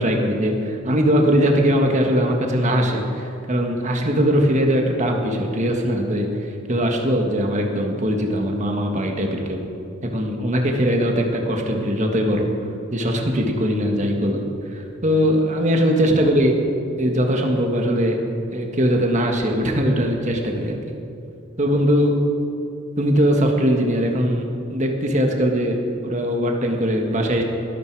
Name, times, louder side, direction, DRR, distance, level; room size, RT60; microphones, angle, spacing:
voice 1, 0.0-9.6 10.0-12.5 12.9-14.4 14.7-16.5 17.0-18.2 18.5-20.8 21.6-22.1 23.0-27.4, equal, 35° right, 2 dB, 1.7 m, -20 dB
23.0 x 12.0 x 4.8 m, 2.6 s
head